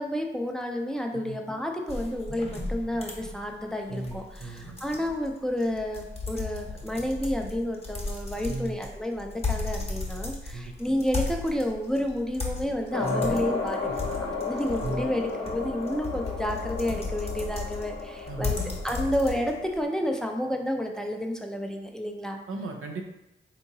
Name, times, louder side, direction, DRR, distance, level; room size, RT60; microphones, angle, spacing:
voice 1, 0.0-13.8 14.4-18.6 18.8-22.4, equal, 5° left, 2 dB, 0.5 m, -30 dB
sound 1, 1.9-19.8, left 3 dB, 30° left, 0.9 m, -36 dB
voice 2, 3.9-4.8 8.4-8.8 10.5-10.7 13.0-13.4 14.8-15.0 18.3-18.5 22.5-23.0, right 2 dB, 85° right, 2 dB, 0.5 m, -35 dB
sound 2, 12.9-19.6, left 4 dB, 65° left, 0.7 m, -34 dB
3.6 x 2.8 x 2.7 m, 0.92 s
cardioid pair, 55°, 21 cm